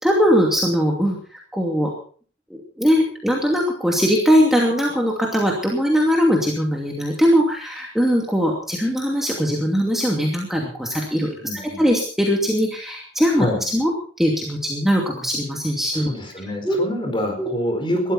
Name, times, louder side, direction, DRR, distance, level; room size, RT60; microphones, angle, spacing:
voice 1, 0.0-1.2 1.5-1.9 2.5-13.9 14.2-16.1 16.6-16.8 17.4-17.5, equal, ahead, -2 dB, 2.6 m, -20 dB
voice 2, 11.4-11.8 13.3-13.6 15.9-18.1, equal, 25° left, 3 dB, 4.5 m, -26 dB
20.5 x 13.5 x 4.2 m, 0.43 s
head